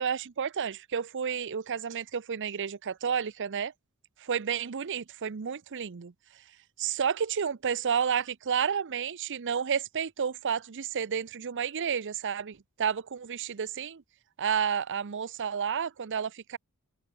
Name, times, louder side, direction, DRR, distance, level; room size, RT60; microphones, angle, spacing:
voice 1, 0.0-3.7 4.2-6.1 6.8-14.0 14.4-16.6, right 7 dB, 55° right, 0.6 m, -31 dB
open air
head